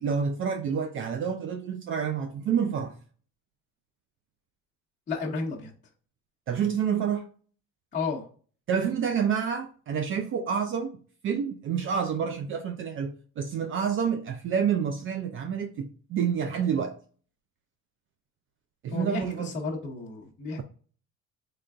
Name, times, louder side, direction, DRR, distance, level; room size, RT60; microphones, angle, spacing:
voice 1, 0.0-2.9 6.5-7.3 8.7-11.0 11.2-17.0 18.8-19.5, right 7 dB, 40° right, 0.4 m, -28 dB
voice 2, 5.1-5.7 7.9-8.2 18.9-20.6, left 4 dB, 25° left, 1.0 m, -32 dB
3.8 x 3.3 x 2.3 m
cardioid pair, 130°, 31 cm